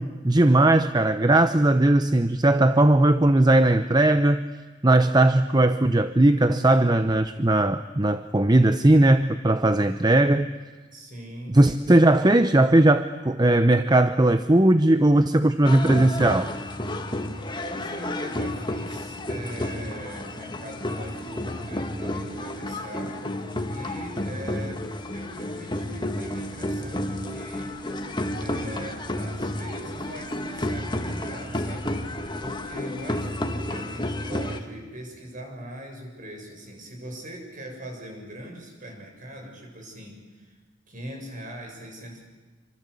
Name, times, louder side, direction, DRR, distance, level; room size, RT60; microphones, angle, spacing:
voice 1, 0.0-4.5 4.8-10.5 11.5-16.5, right 1 dB, 20° right, 10 dB, 0.8 m, -19 dB
voice 2, 10.9-11.8 17.6-23.2 23.7-27.8 28.4-32.0 32.4-40.6 40.9-42.2, equal, 45° right, 2 dB, 7.4 m, -41 dB
sound 1, 15.6-34.6, left 1 dB, 25° left, 1.9 m, -31 dB
27.5 x 25.5 x 8.4 m, 1.3 s
head